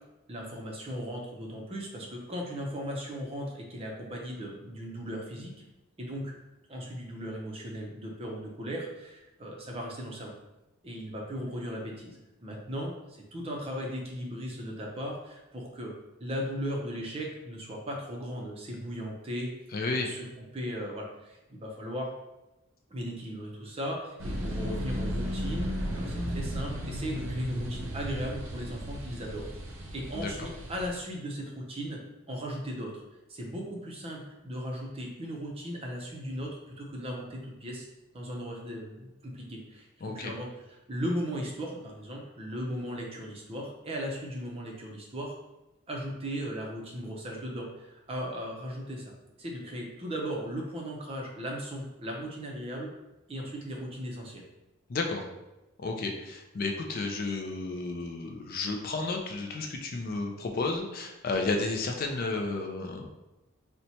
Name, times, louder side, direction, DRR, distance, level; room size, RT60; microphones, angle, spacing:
voice 1, 0.3-5.5 6.0-6.3 6.7-10.3 10.8-15.9 16.2-19.5 19.9-20.2 20.5-22.1 22.9-29.5 29.9-32.0 32.3-33.0 33.3-37.9 38.1-40.5 40.9-45.3 45.9-49.1 49.4-52.9 53.3-54.4, equal, 30° right, -1 dB, 0.5 m, -37 dB
voice 2, 19.7-20.2 30.1-30.5 40.0-40.3 54.9-55.2 55.8-63.1, left 3 dB, 45° left, 2 dB, 0.4 m, -32 dB
sound 1, 24.2-30.9, equal, 80° right, 0.7 m, -34 dB
4.1 x 2.1 x 2.8 m, 0.98 s
head